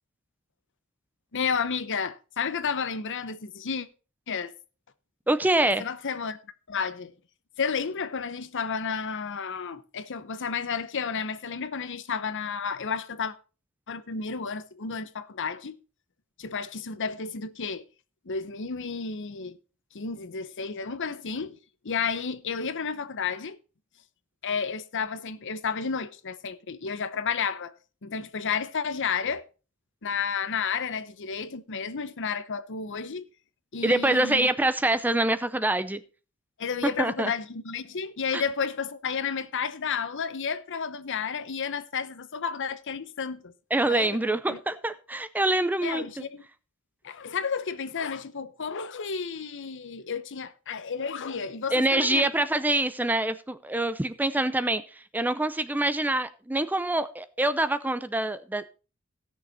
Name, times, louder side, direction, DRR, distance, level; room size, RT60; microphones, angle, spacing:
voice 1, 1.3-3.9 4.3-4.5 5.8-6.4 6.7-7.1 7.6-13.3 13.9-15.7 16.4-17.8 18.2-19.6 19.9-21.6 21.8-23.6 24.4-27.7 28.0-29.4 30.0-33.3 33.7-34.5 36.6-43.5 43.9-44.2 44.5-44.6 45.8-46.4 47.0-52.3, left 6 dB, 60° left, 0.8 m, -31 dB
voice 2, 5.3-5.8 33.8-36.0 36.8-37.3 38.3-38.4 43.7-46.2 51.7-58.6, right 1 dB, 10° right, 0.5 m, -25 dB
17.0 x 6.7 x 4.1 m
head